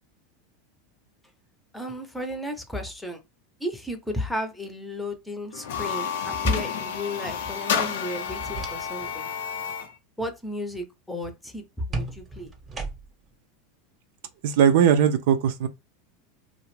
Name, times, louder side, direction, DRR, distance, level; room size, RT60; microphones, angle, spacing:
voice 1, 1.7-3.2 3.6-9.3 10.2-12.5, left 1 dB, 5° left, 0.7 m, -33 dB
sound 1, 5.5-9.9, left 7 dB, 75° left, 0.5 m, -30 dB
sound 2, 8.2-9.2 9.5-9.8 11.9-13.3, right 3 dB, 25° right, 0.8 m, -36 dB
voice 2, 14.4-15.7, right 8 dB, 70° right, 0.4 m, -19 dB
2.4 x 2.0 x 3.1 m
hypercardioid pair, 100°, 0 cm